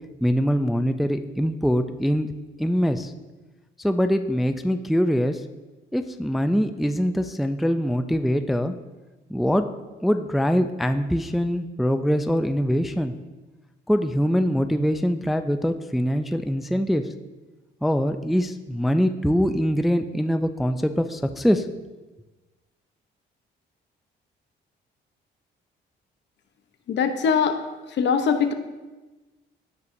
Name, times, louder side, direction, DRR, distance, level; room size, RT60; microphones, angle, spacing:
voice 1, 0.2-2.3 2.6-3.1 3.8-5.4 5.9-8.7 9.3-9.6 10.0-13.1 13.9-17.0 17.8-21.7, equal, ahead, 8 dB, 0.4 m, -23 dB
voice 2, 26.9-27.6 27.9-28.5, left 6 dB, 65° left, 8 dB, 0.8 m, -21 dB
15.0 x 5.5 x 2.7 m, 1.2 s
cardioid pair, 90°, 20 cm